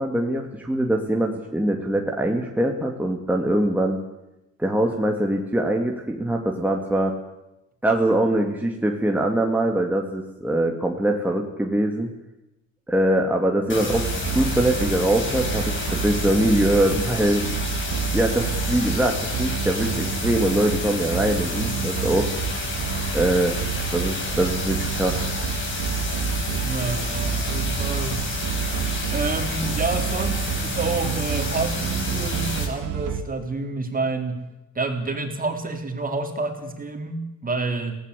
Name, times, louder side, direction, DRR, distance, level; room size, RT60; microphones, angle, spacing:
voice 1, 0.0-4.0 4.6-7.1 7.8-12.1 12.9-17.4 18.1-22.3 23.1-23.6 23.9-25.3, right 1 dB, 5° right, 1 dB, 2.4 m, -23 dB
sound 1, 13.7-32.6, left 2 dB, 40° left, 7.0 m, -30 dB
sound 2, 13.9-33.2, right 7 dB, 85° right, 2.3 m, -29 dB
voice 2, 26.6-28.2 29.1-34.4 34.8-38.0, right 3 dB, 30° right, 5 dB, 3.8 m, -28 dB
23.5 x 18.0 x 8.4 m, 0.93 s
cardioid pair, 115°, 30 cm